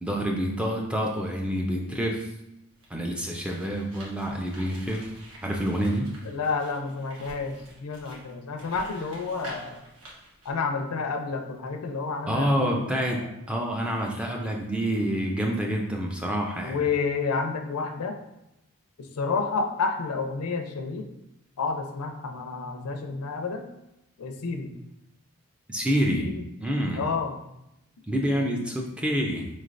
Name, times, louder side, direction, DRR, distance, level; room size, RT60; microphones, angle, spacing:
voice 1, 0.0-2.3 2.9-5.1 5.4-6.1 12.3-16.8 25.7-26.3 26.6-27.0 28.1-29.5, equal, 5° right, 0 dB, 0.3 m, -27 dB
sound 1, 2.7-10.5, equal, 80° right, 1.1 m, -48 dB
voice 2, 6.2-9.8 10.4-13.3 16.6-18.2 19.0-21.1 21.6-23.7 24.2-24.8 26.2-26.5 26.9-27.4, left 4 dB, 90° left, 5 dB, 0.5 m, -30 dB
4.4 x 3.2 x 2.5 m, 0.87 s
head